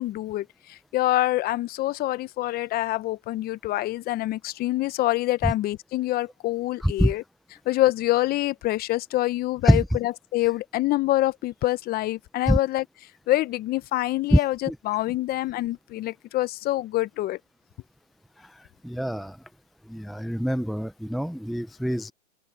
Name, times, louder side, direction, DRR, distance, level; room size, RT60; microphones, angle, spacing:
voice 1, 0.0-7.2 7.7-12.8 13.3-17.4, left 16 dB, 25° left, 1.0 m, -26 dB
voice 2, 6.8-7.1 9.6-9.8 12.5-12.6 14.3-14.4 14.7-14.8 18.4-19.4 19.9-22.1, equal, ahead, 0.5 m, -24 dB
hypercardioid pair, 125°, 37 cm